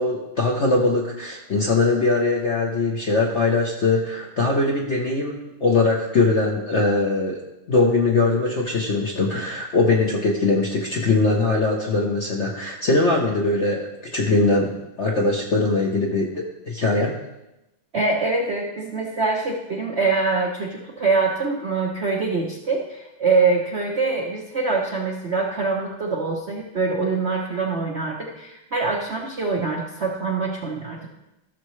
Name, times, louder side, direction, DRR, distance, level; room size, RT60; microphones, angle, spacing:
voice 1, 0.0-7.4 7.7-14.7 15.0-17.2, left 3 dB, 50° left, -1 dB, 0.8 m, -21 dB
voice 2, 17.9-31.1, right 4 dB, 50° right, -1 dB, 0.8 m, -24 dB
14.0 x 6.7 x 3.2 m, 0.94 s
omnidirectional pair, 2.3 m